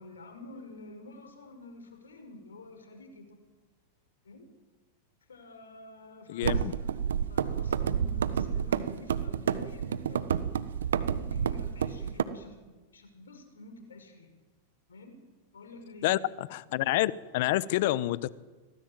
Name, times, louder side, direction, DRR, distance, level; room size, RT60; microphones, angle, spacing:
voice 1, 0.0-3.4 4.2-4.5 5.3-6.8 7.3-10.2 11.1-14.3 14.9-15.2 15.5-16.1, left 2 dB, 90° left, 6 dB, 5.8 m, -49 dB
voice 2, 6.3-6.7 16.0-18.3, left 16 dB, 60° left, 18 dB, 1.1 m, -28 dB
sound 1, 6.4-12.2, right 8 dB, 80° right, 1.3 m, -30 dB
25.0 x 18.0 x 9.0 m, 1.3 s
hypercardioid pair, 105°, 0 cm